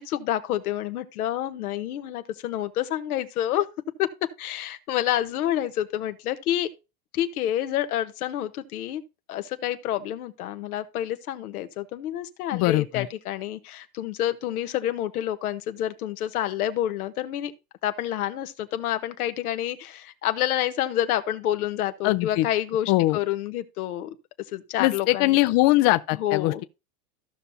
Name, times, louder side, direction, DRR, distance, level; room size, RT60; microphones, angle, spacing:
voice 1, 0.0-3.7 4.0-4.1 4.4-6.7 7.1-9.0 9.3-17.5 17.8-24.1 24.5-25.4 26.2-26.6, left 12 dB, 85° left, 1.2 m, -28 dB
voice 2, 12.5-13.1 22.0-22.5 22.9-23.2 24.8-26.6, left 18 dB, 50° left, 0.6 m, -21 dB
15.0 x 5.6 x 2.7 m
supercardioid pair, 105°, 43 cm